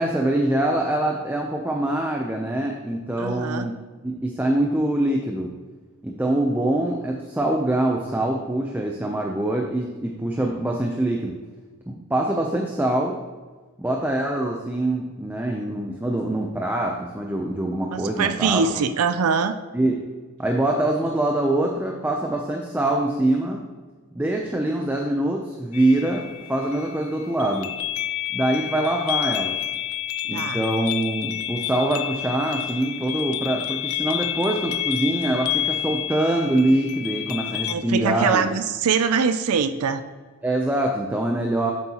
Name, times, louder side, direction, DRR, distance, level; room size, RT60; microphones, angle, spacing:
voice 1, 0.0-3.7 4.0-5.5 6.0-11.4 11.9-13.2 13.8-18.6 19.7-20.0 20.4-23.6 24.1-27.7 28.3-29.6 30.2-38.5 40.4-41.7, right 1 dB, 10° right, 0 dB, 0.5 m, -24 dB
voice 2, 3.2-3.7 17.9-19.5 30.3-30.6 37.6-40.0, right 6 dB, 80° right, 10 dB, 0.4 m, -23 dB
sound 1, 25.7-37.7, left 12 dB, 75° left, 0.4 m, -29 dB
8.4 x 8.1 x 2.9 m, 1.4 s
head